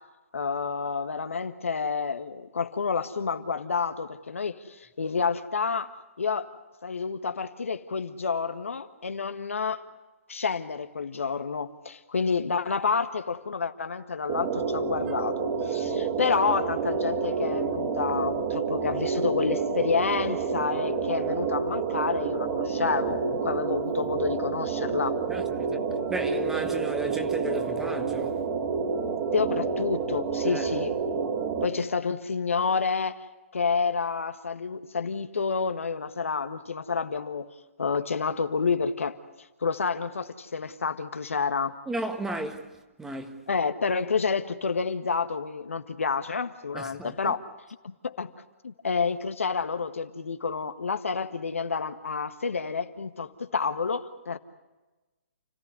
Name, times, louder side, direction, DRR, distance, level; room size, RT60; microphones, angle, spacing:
voice 1, 0.3-5.9 6.2-6.5 6.8-9.8 10.3-25.2 29.3-30.9 31.6-33.2 33.5-37.5 37.8-39.2 39.6-41.8 43.5-47.4 47.8-48.3 48.6-54.4, left 5 dB, 75° left, 1.6 m, -29 dB
sound 1, 14.3-31.7, right 5 dB, 35° right, 3.4 m, -29 dB
voice 2, 25.3-25.8 26.1-28.5 30.4-30.7 41.9-43.4 46.7-47.3, right 2 dB, 5° right, 1.7 m, -34 dB
30.0 x 15.5 x 9.8 m
figure-of-eight pair, 135°, 7 cm